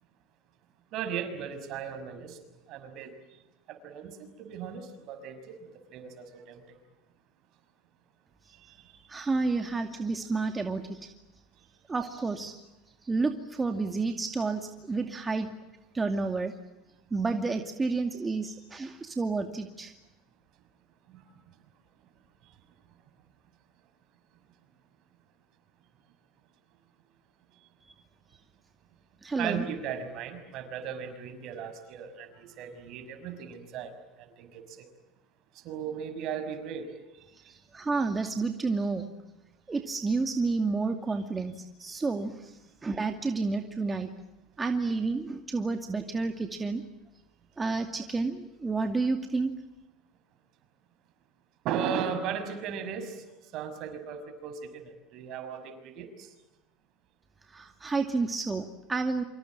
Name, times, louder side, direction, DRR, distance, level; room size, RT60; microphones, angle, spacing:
voice 1, 0.9-2.4 2.7-3.1 3.7-5.5 5.9-6.8 8.5-8.8 21.1-21.2 29.4-33.9 34.2-34.9 35.5-36.9 51.6-53.2 53.5-56.3, right 7 dB, 60° right, 9 dB, 6.0 m, -37 dB
voice 2, 8.9-11.2 11.9-12.5 13.0-15.5 15.9-16.5 17.1-19.9 27.8-27.9 29.2-29.6 37.5-39.1 39.7-44.1 44.6-46.8 47.6-49.5 57.5-59.2, right 3 dB, 20° right, 5 dB, 2.4 m, -30 dB
28.5 x 26.0 x 7.5 m, 1.0 s
supercardioid pair, 90°, 0 cm